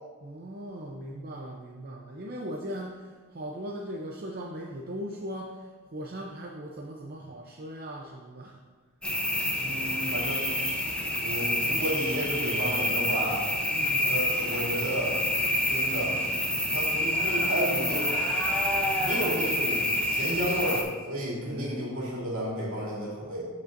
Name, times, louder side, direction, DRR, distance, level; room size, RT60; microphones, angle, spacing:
voice 1, 0.2-8.6 13.7-14.1 21.4-21.8, equal, 45° right, -1 dB, 0.6 m, -39 dB
sound 1, 9.0-20.8, left 1 dB, 5° left, 0.7 m, -28 dB
voice 2, 9.6-10.5 11.2-13.4 14.0-15.2 15.7-16.1 16.6-18.3 19.0-23.5, right 1 dB, 65° right, -5 dB, 2.5 m, -32 dB
14.0 x 5.3 x 2.6 m, 1.4 s
head